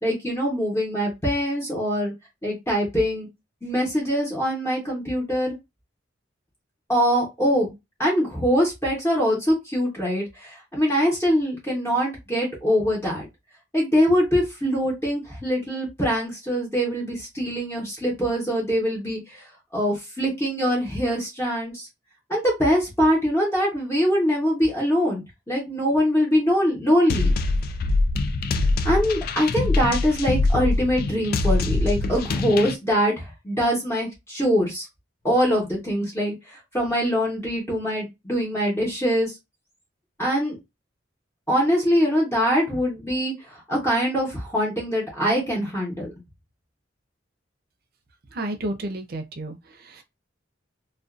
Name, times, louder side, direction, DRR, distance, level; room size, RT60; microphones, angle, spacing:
voice 1, 0.0-2.1 2.4-3.3 3.6-5.5 6.9-7.7 8.0-13.3 13.7-21.9 22.3-27.3 28.8-34.9 35.2-39.3 40.2-40.6 41.5-46.1, equal, 15° left, 0.9 m, -23 dB
sound 1, 27.1-32.7, left 2 dB, 50° left, 0.3 m, -23 dB
voice 2, 48.3-50.0, right 1 dB, 55° right, 0.6 m, -32 dB
2.5 x 2.3 x 2.4 m
head